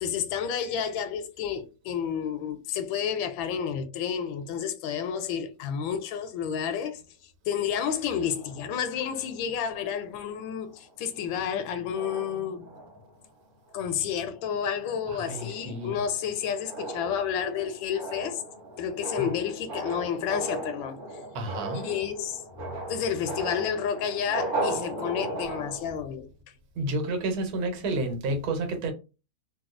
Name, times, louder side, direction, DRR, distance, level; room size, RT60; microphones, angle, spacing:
voice 1, 0.0-7.0 7.5-12.7 13.7-18.4 18.8-21.0 21.7-26.3, left 8 dB, 80° left, 1.3 m, -30 dB
sound 1, 8.2-10.0 10.7-10.9 11.2-11.6 12.0-13.2 13.7-14.0 14.4-26.0, right 2 dB, 60° right, 0.5 m, -37 dB
voice 2, 15.1-16.0 19.2-19.3 21.3-21.9 26.8-28.9, right 2 dB, 90° right, 1.7 m, -30 dB
4.0 x 2.3 x 2.4 m
omnidirectional pair, 2.2 m